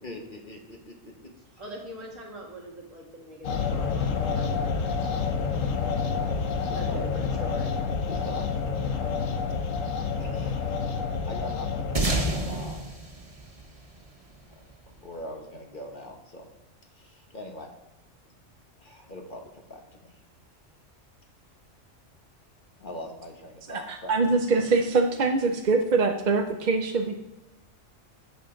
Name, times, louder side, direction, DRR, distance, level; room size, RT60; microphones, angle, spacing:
voice 1, 0.0-1.1 6.1-7.1 8.1-9.0 9.6-9.7 10.2-10.8 11.2-12.0 12.4-12.8 14.6-14.7 15.0-16.5 16.9-17.7 18.8-20.2 22.8-24.2, left 1 dB, 40° left, 2 dB, 1.6 m, -42 dB
voice 2, 1.6-5.4 6.7-7.8, right 1 dB, 80° right, -2 dB, 2.5 m, -42 dB
sound 1, 3.4-12.7, left 5 dB, 85° left, 1.2 m, -28 dB
sound 2, 12.0-14.7, right 2 dB, 30° right, 1.1 m, -30 dB
voice 3, 23.7-27.1, right 3 dB, 45° right, 4 dB, 0.6 m, -24 dB
11.0 x 8.0 x 3.9 m, 0.99 s
omnidirectional pair, 1.3 m